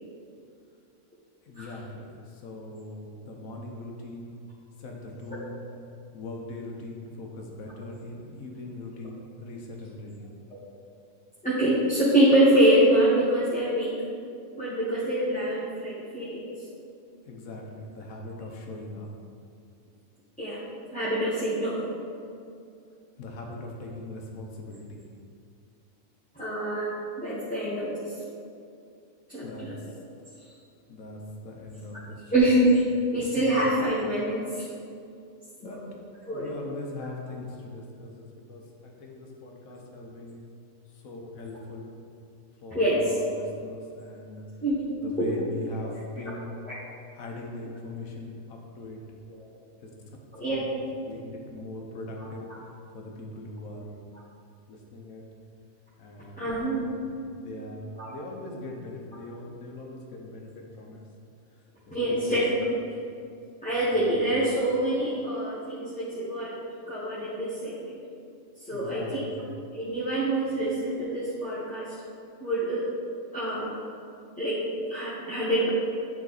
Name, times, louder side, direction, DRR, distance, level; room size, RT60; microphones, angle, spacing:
voice 1, 1.5-2.1 2.3-4.4 4.8-5.6 6.1-10.3 17.3-19.1 23.2-24.8 29.4-29.7 30.9-31.2 31.4-32.5 33.3-33.4 35.6-35.8 36.3-40.4 41.0-41.9 42.6-44.4 45.0-46.6 47.1-49.0 49.8-49.9 50.5-50.7 51.1-52.5 52.9-53.9 54.7-55.2 56.0-56.9 57.4-61.1 61.9-62.6 68.7-69.5, left 2 dB, 85° left, 0 dB, 1.4 m, -40 dB
voice 2, 11.4-13.9 14.6-16.5 20.4-20.6 20.9-21.8 26.4-26.9 27.2-28.0 29.3-29.7 32.3-32.8 33.1-34.6 35.6-35.8 36.3-36.5 42.7-43.2 44.6-44.8 45.2-45.3 45.8-45.9 49.4-49.5 50.3-50.7 56.4-56.9 58.0-58.1 61.9-62.7 63.6-66.6 66.9-67.9 68.7-69.3 69.7-71.9 72.4-72.9 73.3-73.7 74.4-74.6 74.9-75.7, right 1 dB, 5° left, -10 dB, 1.1 m, -25 dB
9.1 x 4.0 x 4.1 m, 2.4 s
omnidirectional pair, 1.4 m